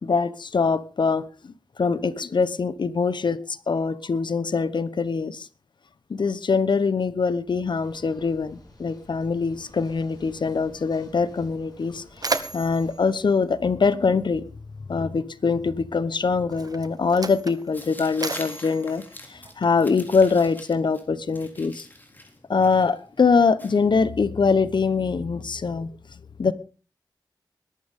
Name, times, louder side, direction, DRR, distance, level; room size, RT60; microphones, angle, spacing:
voice 1, 0.0-5.5 6.1-14.4 14.9-21.9 22.5-25.9 26.4-26.5, left 5 dB, 75° left, 15 dB, 1.0 m, -23 dB
sound 1, 7.8-13.3, left 2 dB, 55° left, 7.1 m, -50 dB
Mechanisms, 11.2-11.3 11.7-14.4 15.4-15.6 16.4-20.0, right 3 dB, 50° right, 1.2 m, -34 dB
Tearing, 17.7-24.4, left 1 dB, 25° left, 3.6 m, -45 dB
21.0 x 12.0 x 3.7 m, 0.36 s
wide cardioid pair, 65°, 8 cm